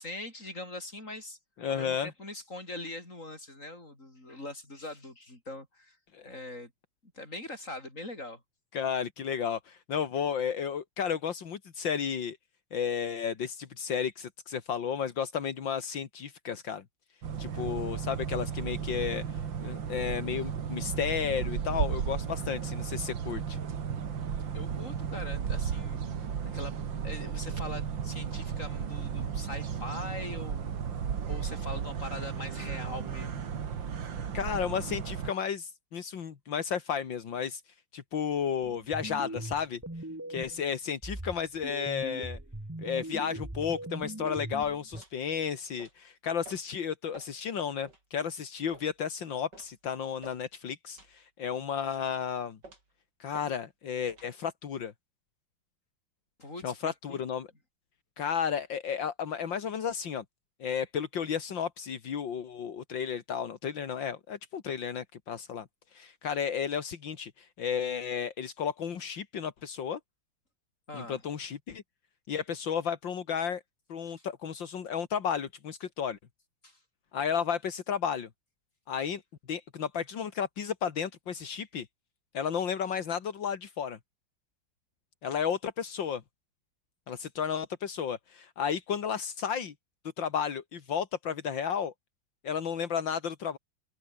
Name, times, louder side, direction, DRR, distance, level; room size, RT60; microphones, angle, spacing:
voice 1, 0.0-1.4 1.7-6.0 6.2-6.7 7.1-8.4 24.5-26.3 26.5-26.7 27.0-30.7 31.3-33.5 56.4-57.2 70.9-71.2 74.1-74.3 76.6-76.8, left 2 dB, 40° left, 7.7 m, -42 dB
voice 2, 1.6-2.1 6.1-6.3 8.7-12.4 12.7-16.8 17.4-23.6 34.3-37.6 37.9-39.8 40.3-42.4 42.8-52.6 53.2-54.9 56.6-57.5 58.2-60.2 60.6-65.7 65.9-70.0 70.9-71.8 72.3-73.6 73.9-76.2 77.1-78.3 78.9-79.2 79.5-81.9 82.3-84.0 85.2-86.2 87.1-89.7 90.2-91.9 92.4-93.6, left 7 dB, 80° left, 2.5 m, -33 dB
sound 1, 17.2-35.3, right 7 dB, 80° right, 2.6 m, -34 dB
sound 2, 38.6-40.6 41.0-45.0, right 1 dB, 10° right, 1.8 m, -40 dB
sound 3, 43.0-43.2 43.6-43.8 44.3-44.4 44.9-45.2 45.8-45.9 46.4-46.6 47.1-47.3 47.9-48.0 48.7-48.9 49.5-49.7 50.2-50.4 51.0-51.2 51.8-52.1 52.6-52.9 53.3-53.5 54.1-54.3, right 2 dB, 65° right, 6.8 m, -51 dB
open air
omnidirectional pair, 2.0 m